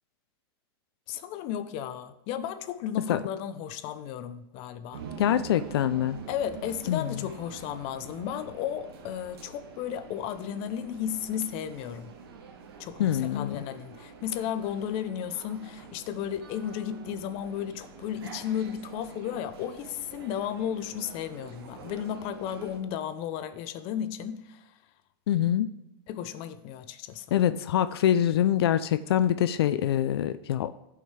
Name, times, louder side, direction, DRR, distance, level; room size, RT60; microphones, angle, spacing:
voice 1, 1.1-5.0 6.3-12.1 12.8-24.7 26.1-27.4, left 9 dB, 45° left, 0.7 m, -34 dB
sound 1, 4.9-22.8, right 6 dB, 85° right, 1.4 m, -46 dB
voice 2, 5.2-6.2 6.9-7.1 13.0-13.6 25.3-25.7 27.3-30.7, left 11 dB, 90° left, 0.4 m, -25 dB
15.5 x 5.6 x 3.3 m
supercardioid pair, 140°, 13 cm